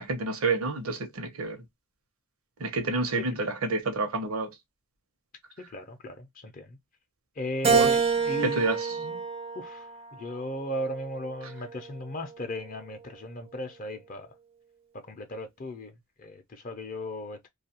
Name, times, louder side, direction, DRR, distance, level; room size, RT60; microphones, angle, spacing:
voice 1, 0.0-1.6 2.6-4.5 7.6-8.0 8.4-9.0, right 3 dB, 80° right, 0.8 m, -29 dB
voice 2, 5.7-6.8 7.4-9.2 9.5-14.3 14.9-17.5, left 1 dB, 40° left, 0.5 m, -37 dB
Keyboard (musical), 7.6-10.1 10.7-11.9, right 6 dB, 30° right, 0.4 m, -27 dB
2.6 x 2.3 x 2.8 m
head